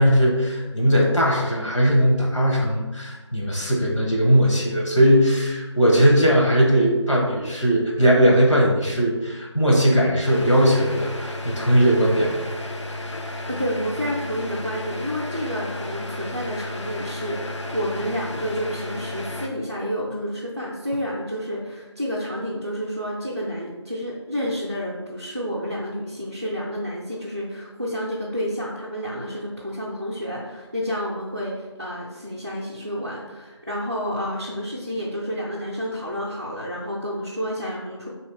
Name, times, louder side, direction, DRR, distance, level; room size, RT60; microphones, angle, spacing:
voice 1, 0.0-12.5, equal, 90° left, -2 dB, 1.2 m, -19 dB
sound 1, 10.3-19.5, left 1 dB, 75° left, 0.6 m, -33 dB
voice 2, 13.5-38.1, equal, 35° right, -6 dB, 0.5 m, -30 dB
3.9 x 3.0 x 3.2 m, 1.2 s
figure-of-eight pair, 180°, 15 cm